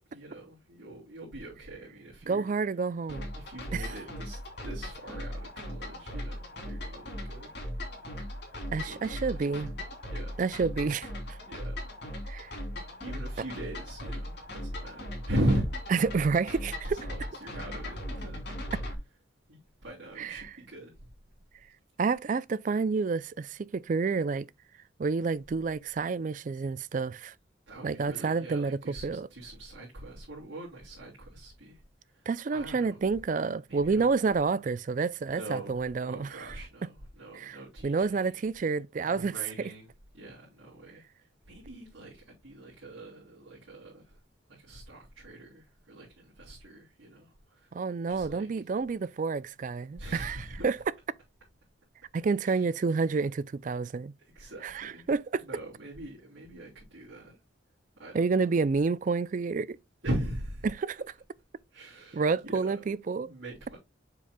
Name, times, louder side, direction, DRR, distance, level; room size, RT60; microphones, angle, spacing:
voice 1, 0.1-2.5 3.3-7.6 8.9-9.4 10.1-10.4 11.5-11.8 12.2-12.7 13.0-15.6 16.9-18.4 19.5-20.9 27.7-31.8 32.1-33.0 33.7-34.0 35.3-38.3 39.0-39.9 40.1-41.0 41.4-44.2 44.5-47.7 48.1-48.5 50.0-50.6 52.4-52.6 54.2-55.1 55.4-57.4 58.0-58.5 60.0-60.7 61.7-62.8 63.1-63.8, right 1 dB, 70° right, 3.3 m, -40 dB
voice 2, 2.3-3.3 3.7-4.0 8.7-9.7 10.4-11.4 12.3-12.5 15.9-17.1 20.2-20.4 22.0-24.5 25.0-27.3 27.8-29.3 32.3-36.6 37.3-37.6 37.8-39.3 47.7-50.8 52.1-54.1 54.6-55.4 58.1-59.8 60.6-61.0 62.1-63.3, right 4 dB, 40° right, 0.3 m, -29 dB
sound 1, 3.1-18.9, left 1 dB, 55° left, 3.0 m, -38 dB
7.4 x 6.8 x 2.2 m
head